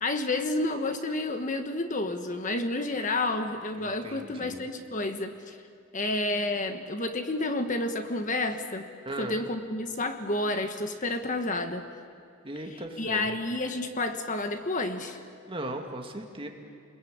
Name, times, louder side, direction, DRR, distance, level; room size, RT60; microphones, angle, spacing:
voice 1, 0.0-5.6 5.9-11.8 12.6-15.2, left 2 dB, 35° left, 7 dB, 1.4 m, -30 dB
voice 2, 3.8-4.6 9.1-9.3 12.4-13.3 15.5-16.5, right 1 dB, 25° right, 3 dB, 2.3 m, -37 dB
29.5 x 21.5 x 8.7 m, 2.5 s
head